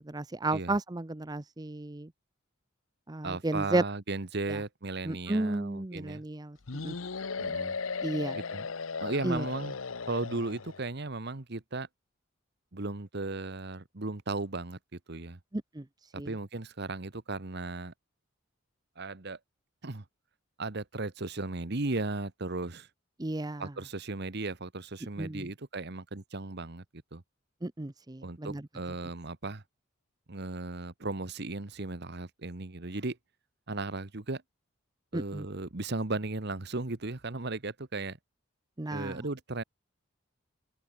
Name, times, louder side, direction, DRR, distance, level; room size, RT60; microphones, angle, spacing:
voice 1, 0.0-2.1 3.1-3.8 4.5-4.6 5.0-6.6 6.8-6.9 8.0-8.4 9.2-9.4 15.5-15.8 16.2-16.3 23.2-23.7 25.2-25.5 27.6-28.6 35.1-35.4 38.8-39.2, right 2 dB, 20° right, 0.7 m, -33 dB
voice 2, 3.2-6.2 7.4-7.8 8.3-8.7 9.0-9.8 10.1-11.9 12.7-15.4 16.1-17.9 19.0-19.4 19.8-20.0 20.6-22.9 23.6-26.8 27.1-27.2 28.2-29.6 30.3-33.2 33.7-34.4 35.1-38.2 38.9-39.6, right 3 dB, 55° right, 1.3 m, -36 dB
sound 1, 6.7-10.8, left 4 dB, 75° left, 0.9 m, -36 dB
open air
head